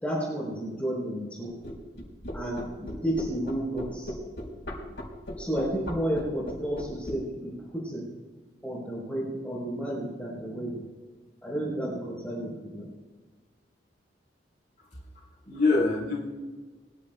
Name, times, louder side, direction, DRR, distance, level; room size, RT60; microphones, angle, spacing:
voice 1, 0.0-1.5 2.3-4.1 5.4-8.1 8.6-10.8 11.4-12.9, right 1 dB, 10° left, -3 dB, 3.8 m, -32 dB
sound 1, 1.6-7.2, left 1 dB, 85° left, 4.4 m, -37 dB
voice 2, 15.1-16.3, left 3 dB, 45° left, -6 dB, 3.5 m, -26 dB
23.5 x 14.0 x 2.3 m, 1.4 s
head